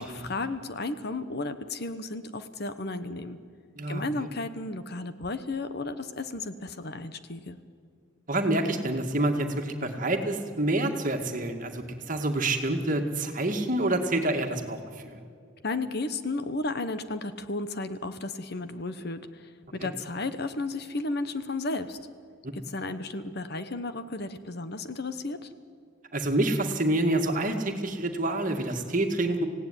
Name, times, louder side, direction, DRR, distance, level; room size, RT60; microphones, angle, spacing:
voice 1, 0.0-3.4 3.9-7.6 15.6-22.0 22.5-25.5, left 2 dB, 50° left, 11 dB, 1.1 m, -33 dB
voice 2, 3.8-4.3 8.3-15.2 19.8-19.9 26.1-29.5, right 1 dB, 40° right, 4 dB, 2.0 m, -27 dB
25.5 x 17.0 x 9.9 m, 2.2 s
head